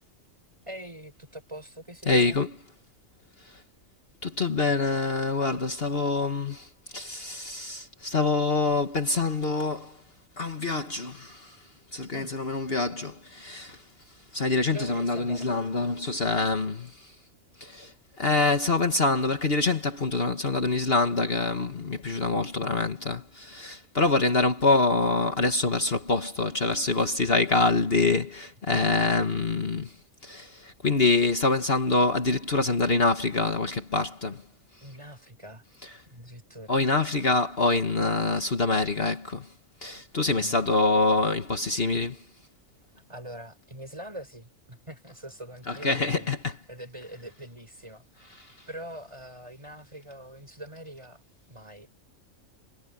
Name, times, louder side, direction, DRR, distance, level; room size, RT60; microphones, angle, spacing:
voice 1, 0.7-2.4 12.1-12.3 14.7-15.5 34.8-35.6 36.1-36.8 40.3-40.6 43.1-46.4 46.7-51.2 51.5-51.9, right 1 dB, 25° right, 6.2 m, -43 dB
voice 2, 2.1-2.6 3.4-3.6 4.2-10.0 10.4-13.9 14.3-17.2 17.6-30.0 30.2-34.4 35.8-35.9 36.7-39.5 39.8-42.2 45.7-46.4 48.4-48.7, left 3 dB, 50° left, 1.8 m, -26 dB
omnidirectional pair, 1.3 m